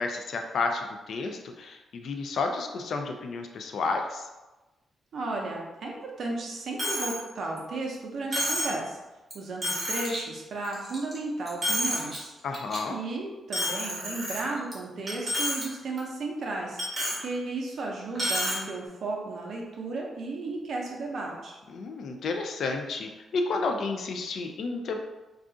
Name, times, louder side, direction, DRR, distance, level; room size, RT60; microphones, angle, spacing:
voice 1, 0.0-4.2 12.4-13.0 21.7-25.0, left 3 dB, 55° left, 4 dB, 0.3 m, -31 dB
voice 2, 5.1-9.0 9.3-12.3 12.9-16.8 17.2-21.6, right 3 dB, 50° right, -1 dB, 0.6 m, -34 dB
Coin (dropping), 6.8-7.2 7.6-7.7 8.3-8.8 9.3-9.4 9.6-10.2 10.6-11.2 11.5-12.2 12.5-12.8 13.5-14.7 15.1-15.6 16.0-16.1 16.8-17.2 18.1-18.6, equal, 20° right, 0.9 m, -29 dB
2.4 x 2.4 x 3.7 m, 1.1 s
wide cardioid pair, 170°, 0 cm